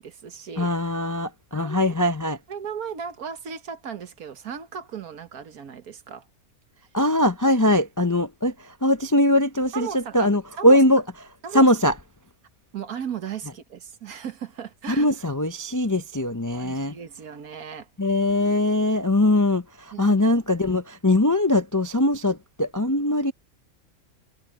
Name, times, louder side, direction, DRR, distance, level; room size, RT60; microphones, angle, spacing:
voice 1, 0.0-0.7 1.5-1.9 2.5-6.3 9.7-10.8 11.4-11.7 12.7-15.1 16.5-17.9 19.9-20.2, right 7 dB, 80° right, 1.8 m, -36 dB
voice 2, 0.6-2.4 6.9-11.0 11.5-11.9 14.9-17.0 18.0-23.3, left 1 dB, 25° left, 0.4 m, -21 dB
omnidirectional pair, 1.5 m